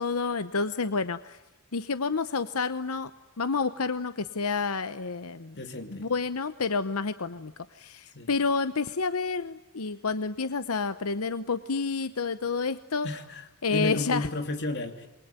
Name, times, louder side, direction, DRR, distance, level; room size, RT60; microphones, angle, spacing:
voice 1, 0.0-1.4 1.7-3.1 3.4-5.6 5.9-13.1 13.6-14.3, left 4 dB, 90° left, 12 dB, 0.9 m, -29 dB
voice 2, 5.6-6.1 8.1-8.3 13.0-15.1, left 1 dB, 55° left, 6 dB, 3.0 m, -33 dB
28.0 x 23.0 x 9.2 m, 0.97 s
head